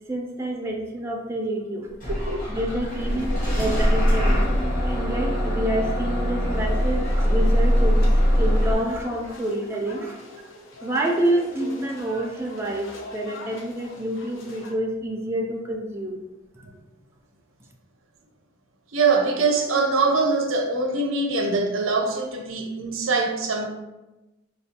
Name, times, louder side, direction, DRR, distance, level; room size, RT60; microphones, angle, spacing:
voice 1, 0.1-1.9 2.5-4.5 4.8-10.2 10.8-16.2, right 1 dB, 10° right, 0 dB, 0.3 m, -28 dB
Bus / Engine starting, 2.0-8.7, equal, 45° left, 1.0 m, -22 dB
sound 1, 3.4-9.5 9.9-10.0, left 1 dB, 25° left, 1.3 m, -43 dB
sound 2, 6.5-14.7, left 2 dB, 75° left, 0.6 m, -43 dB
voice 2, 18.9-23.7, right 3 dB, 90° right, 3 dB, 0.6 m, -23 dB
4.2 x 2.2 x 2.8 m, 1.0 s
head